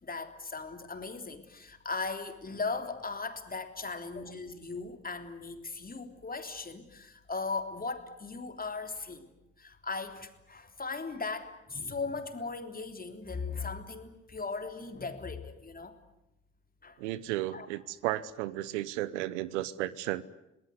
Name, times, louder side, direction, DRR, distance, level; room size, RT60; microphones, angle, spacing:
voice 1, 0.0-9.3 9.6-16.0 16.8-17.0 17.3-17.7, left 4 dB, 25° left, 6 dB, 3.5 m, -38 dB
voice 2, 17.0-20.2, right 15 dB, 75° right, 18 dB, 0.9 m, -34 dB
28.0 x 19.0 x 9.7 m, 0.89 s
hypercardioid pair, 50°, 36 cm